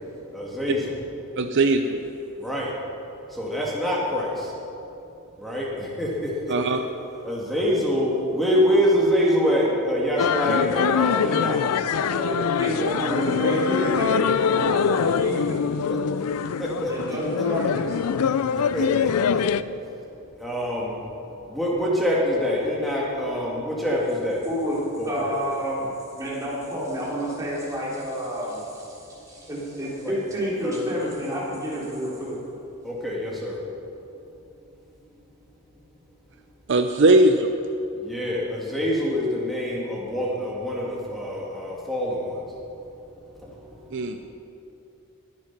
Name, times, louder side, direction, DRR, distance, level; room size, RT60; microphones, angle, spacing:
voice 1, 0.3-1.0 2.4-2.7 3.4-4.5 5.4-6.8 7.2-11.6 16.6-16.9 18.7-19.1 20.4-21.0 21.5-24.4 25.0-25.3 30.0-30.1 30.6-30.8 32.8-33.6 38.0-42.4, equal, ahead, -5 dB, 1.9 m, -25 dB
voice 2, 1.4-2.0 6.5-6.8 36.7-37.5 43.9-44.2, right 2 dB, 55° right, 7 dB, 0.5 m, -19 dB
sound 1, 10.2-19.6, left 6 dB, 85° left, 0.4 m, -24 dB
voice 3, 11.7-15.6 16.9-18.0 24.4-32.4, equal, 15° right, -7 dB, 3.5 m, -29 dB
20.5 x 7.5 x 5.9 m, 2.8 s
head